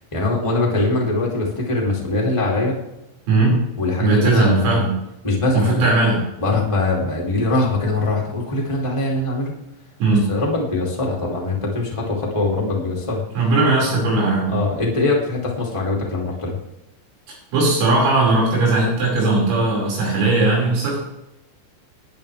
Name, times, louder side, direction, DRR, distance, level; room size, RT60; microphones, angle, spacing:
voice 1, 0.1-2.8 3.8-4.8 5.2-5.8 6.4-9.6 10.3-13.2 14.5-16.6, left 2 dB, 40° left, -3 dB, 0.4 m, -22 dB
voice 2, 3.3-3.6 4.0-5.0 5.5-6.3 10.0-10.3 13.3-14.6 17.3-21.0, right 3 dB, 80° right, -3 dB, 8.0 m, -18 dB
19.0 x 11.0 x 3.4 m, 0.90 s
omnidirectional pair, 5.9 m